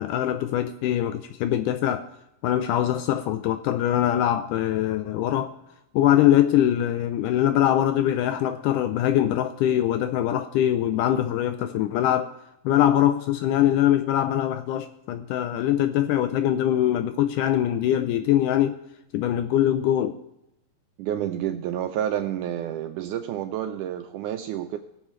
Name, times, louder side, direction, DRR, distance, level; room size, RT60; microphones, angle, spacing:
voice 1, 0.0-2.1 2.4-5.5 5.9-12.3 12.7-18.8 19.1-20.2, left 11 dB, 80° left, 1.9 m, -23 dB
voice 2, 21.0-24.8, right 11 dB, 85° right, 1.8 m, -29 dB
22.0 x 7.4 x 3.1 m
omnidirectional pair, 4.0 m